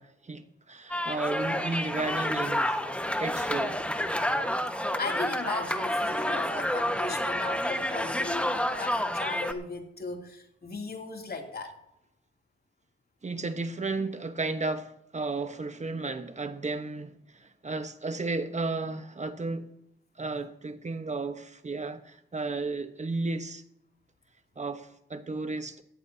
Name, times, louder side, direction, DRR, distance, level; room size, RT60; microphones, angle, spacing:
voice 1, 0.0-2.8 3.2-3.8 13.2-19.7 20.2-23.6 24.6-25.8, right 3 dB, 35° right, 1.2 m, -33 dB
sound 1, 0.9-9.5, left 1 dB, 5° left, 1.5 m, -29 dB
voice 2, 4.7-11.8, left 3 dB, 50° left, 2.9 m, -37 dB
17.0 x 14.0 x 2.8 m
supercardioid pair, 50°, 20 cm